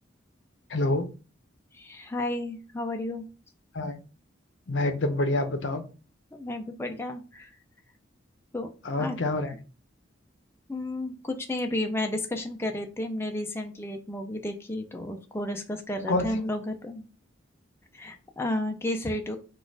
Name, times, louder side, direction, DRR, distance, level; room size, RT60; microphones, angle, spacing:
voice 1, 0.7-1.1 3.7-4.0 4.7-5.8 8.8-9.6 16.1-16.4, left 2 dB, 75° left, 7 dB, 0.7 m, -27 dB
voice 2, 1.7-3.2 6.3-7.5 8.5-8.7 9.0-9.2 10.7-17.1 17.9-19.4, left 1 dB, 15° left, 4 dB, 0.4 m, -32 dB
4.2 x 2.4 x 4.6 m, 0.34 s
head